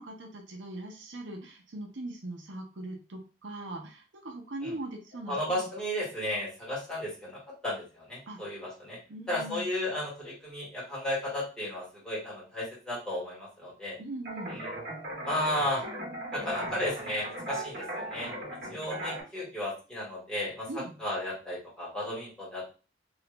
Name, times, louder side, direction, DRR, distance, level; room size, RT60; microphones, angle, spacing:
voice 1, 0.0-5.6 8.3-8.4 9.1-9.7 14.0-14.6 20.7-20.9, right 2 dB, 85° right, 2 dB, 0.7 m, -40 dB
voice 2, 5.3-9.0 9.3-14.0 14.5-14.7 15.2-15.8 16.3-18.3 18.7-22.6, left 1 dB, 5° left, -7 dB, 1.7 m, -34 dB
sound 1, 14.2-19.2, right 1 dB, 55° right, 1.1 m, -38 dB
2.9 x 2.5 x 3.2 m, 0.34 s
head